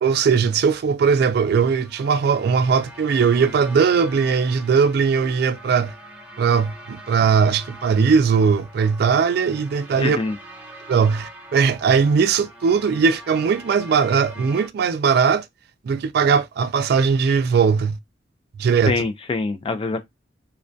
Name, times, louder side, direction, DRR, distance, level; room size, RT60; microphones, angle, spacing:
voice 1, 0.0-5.9 6.4-10.2 10.9-15.4 15.8-18.0 18.6-19.0, right 6 dB, 60° right, 0.3 m, -19 dB
sound 1, 1.2-14.7, right 1 dB, 10° right, 0.7 m, -43 dB
voice 2, 10.0-10.4 18.9-20.0, left 3 dB, 30° left, 0.3 m, -24 dB
2.2 x 2.2 x 2.5 m
head